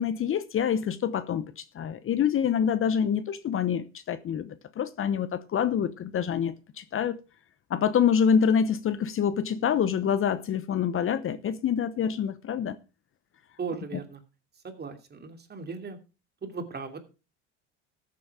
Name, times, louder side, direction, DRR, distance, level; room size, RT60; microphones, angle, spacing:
voice 1, 0.0-7.2 7.7-12.8, left 8 dB, 40° left, 0.9 m, -26 dB
voice 2, 13.6-14.2 14.6-16.0 16.4-17.0, right 5 dB, 30° right, 2.8 m, -37 dB
14.0 x 7.7 x 4.8 m
hypercardioid pair, 80°, 34 cm